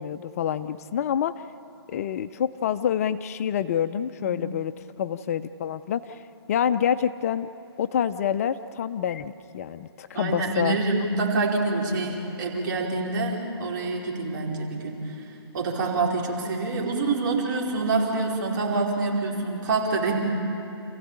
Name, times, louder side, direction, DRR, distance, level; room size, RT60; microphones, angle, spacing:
voice 1, 0.0-1.3 1.9-4.7 5.0-6.2 6.5-7.5 7.8-10.8, left 9 dB, 35° left, 12 dB, 0.5 m, -27 dB
voice 2, 10.1-15.0 15.5-20.2, right 3 dB, 45° right, -2 dB, 4.7 m, -26 dB
28.5 x 15.5 x 8.7 m, 2.9 s
hypercardioid pair, 155°, 14 cm